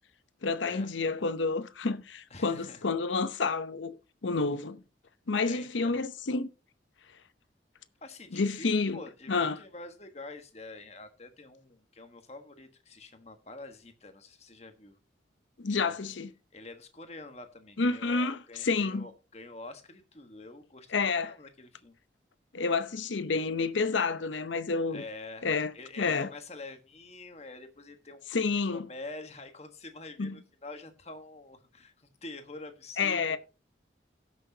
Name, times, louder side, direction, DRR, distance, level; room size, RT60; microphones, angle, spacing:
voice 1, 0.4-4.8 5.3-6.5 8.3-9.0 9.3-9.6 15.6-16.3 17.8-19.1 20.9-21.3 22.5-25.0 25.4-25.7 26.0-26.3 28.3-28.9 30.2-30.4 33.0-33.4, left 4 dB, 85° left, 0.7 m, -29 dB
voice 2, 2.3-2.8 5.4-6.0 8.0-14.9 15.7-15.9 16.5-22.0 24.9-25.5 25.7-28.2 28.7-33.4, left 2 dB, 35° left, 1.4 m, -46 dB
17.5 x 6.2 x 2.8 m
head